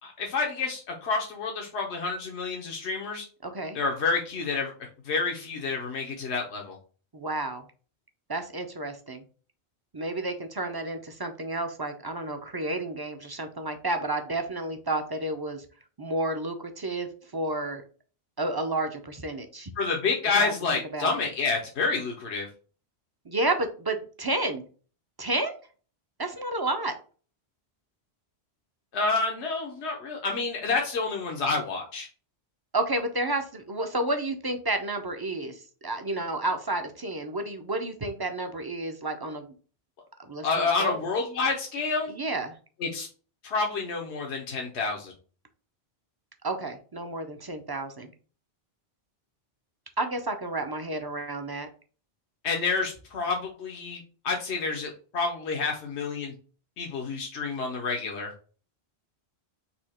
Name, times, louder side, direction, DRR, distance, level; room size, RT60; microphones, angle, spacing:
voice 1, 0.0-3.3 3.7-4.7 5.0-6.8 19.8-22.5 28.9-32.1 40.4-42.1 42.8-43.1 43.4-45.1 52.4-56.3 56.8-58.3, left 4 dB, 85° left, 0 dB, 1.1 m, -29 dB
voice 2, 3.4-3.8 7.1-7.6 8.3-9.2 9.9-15.6 16.0-17.8 18.4-19.7 20.4-20.5 20.9-21.1 23.3-24.6 25.2-25.6 26.2-26.9 32.7-35.6 35.8-39.5 40.2-41.0 42.1-42.5 46.4-48.1 50.0-51.7, right 2 dB, 35° right, 6 dB, 0.4 m, -31 dB
4.3 x 2.7 x 4.2 m, 0.39 s
omnidirectional pair, 1.1 m